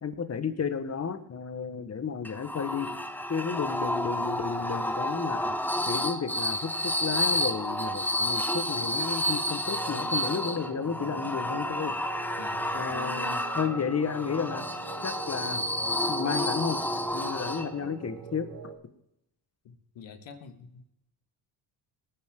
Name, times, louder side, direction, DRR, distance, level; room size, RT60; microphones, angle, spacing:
voice 1, 0.0-2.9 3.3-5.6 5.9-11.9 12.7-14.6 15.0-15.7 16.1-16.8 17.1-18.5, left 6 dB, 35° left, 10 dB, 1.4 m, -32 dB
sound 1, 2.2-18.0, left 1 dB, 5° left, 0.9 m, -30 dB
sound 2, 9.6-18.7, right 7 dB, 85° right, 2.4 m, -43 dB
voice 2, 12.4-12.9 19.7-20.9, left 5 dB, 75° left, 8 dB, 1.8 m, -47 dB
20.0 x 9.5 x 3.8 m, 0.79 s
cardioid pair, 100°, 45 cm